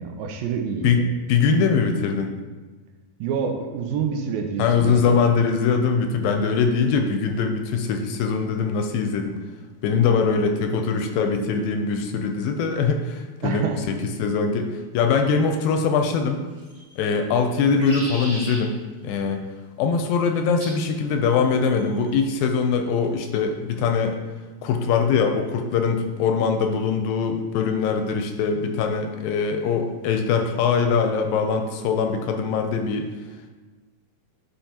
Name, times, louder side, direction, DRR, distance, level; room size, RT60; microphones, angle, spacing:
voice 1, 0.0-1.0 3.2-5.2 13.4-13.8, right 6 dB, 80° right, 4 dB, 2.4 m, -27 dB
voice 2, 0.8-2.3 4.6-9.4 9.8-16.4 17.0-18.8 19.0-19.4 19.8-24.2 24.6-33.1, left 5 dB, 80° left, 5 dB, 2.2 m, -22 dB
sound 1, 16.5-17.0 17.5-18.6 20.6-20.8 21.8-22.2, right 1 dB, 15° right, 1.4 m, -37 dB
10.5 x 5.4 x 2.8 m, 1.3 s
omnidirectional pair, 4.3 m